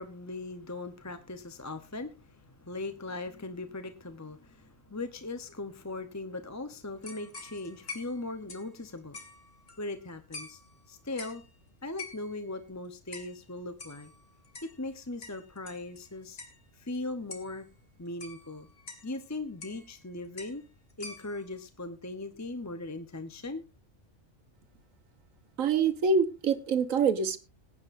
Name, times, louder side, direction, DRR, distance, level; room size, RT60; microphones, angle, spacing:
voice 1, 0.0-9.2 9.8-10.6 10.9-11.4 11.8-14.1 14.6-16.4 16.7-17.7 18.0-18.7 19.0-20.7 21.0-23.6, left 2 dB, 15° left, 0.8 m, -39 dB
sound 1, 7.0-10.0 10.3-10.8 11.2-11.5 12.0-12.5 13.1-13.4 13.8-16.1 16.4-16.6 17.0-17.1 17.3-17.6 18.2-19.1 19.6-20.0 20.4-20.6 20.9-21.5, left 3 dB, 50° left, 2.2 m, -46 dB
voice 2, 25.6-27.4, right 5 dB, 80° right, 1.5 m, -25 dB
21.0 x 9.6 x 2.6 m
omnidirectional pair, 1.4 m